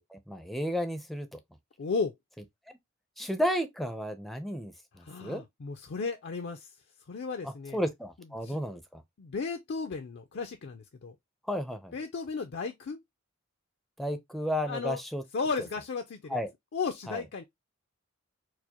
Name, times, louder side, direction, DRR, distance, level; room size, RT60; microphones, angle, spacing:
voice 1, 0.0-1.4 3.2-5.4 7.4-9.0 11.5-11.9 14.0-15.2 16.3-16.5 17.1-17.2, equal, ahead, 0.5 m, -33 dB
voice 2, 1.8-2.1 5.0-6.7 7.1-7.8 8.4-8.6 9.2-11.2 11.9-13.0 14.7-15.0 15.3-16.4 16.7-17.4, left 4 dB, 55° left, 0.4 m, -34 dB
4.6 x 2.1 x 2.8 m
head